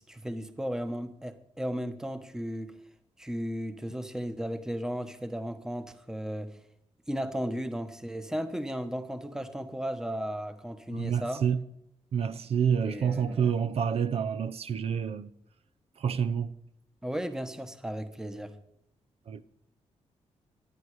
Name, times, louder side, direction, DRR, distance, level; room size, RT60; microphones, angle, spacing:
voice 1, 0.0-2.7 3.2-6.6 7.1-11.4 12.8-13.5 17.0-18.6, equal, 5° right, 1.1 m, -35 dB
voice 2, 10.9-11.6 12.1-15.3 16.0-16.5 19.3-19.4, right 7 dB, 60° right, 0.7 m, -28 dB
25.0 x 9.6 x 4.8 m
wide cardioid pair, 140°, 12 cm